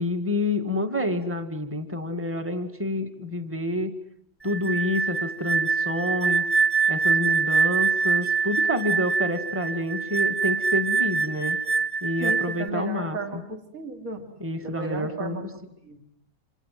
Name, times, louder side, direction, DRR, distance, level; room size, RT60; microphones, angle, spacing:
voice 1, 0.0-3.9 4.4-6.5 6.9-11.6 12.0-13.2 14.4-15.4, left 1 dB, 5° right, 7 dB, 2.0 m, -28 dB
sound 1, 4.5-12.7, right 5 dB, 15° left, 1.2 m, -24 dB
voice 2, 12.2-14.3 14.6-15.5 15.8-16.0, right 3 dB, 50° right, 4 dB, 3.5 m, -34 dB
28.5 x 27.0 x 7.7 m, 0.67 s
omnidirectional pair, 1.9 m